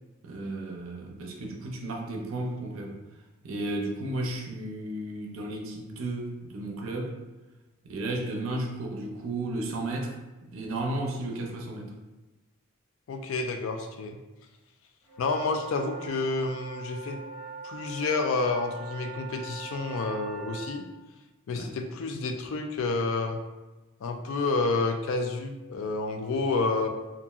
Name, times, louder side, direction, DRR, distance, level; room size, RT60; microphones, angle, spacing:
voice 1, 0.2-3.0 3.4-7.2 7.8-10.2 10.5-11.9 21.5-21.7, right 2 dB, 70° right, 1 dB, 0.5 m, -33 dB
voice 2, 13.1-14.2 15.2-17.2 17.6-20.9 21.5-23.4 24.0-26.9, left 3 dB, 70° left, 5 dB, 0.3 m, -29 dB
sound 1, 15.0-20.7, right 4 dB, 5° left, 1.1 m, -42 dB
2.9 x 2.5 x 2.3 m, 1.1 s
head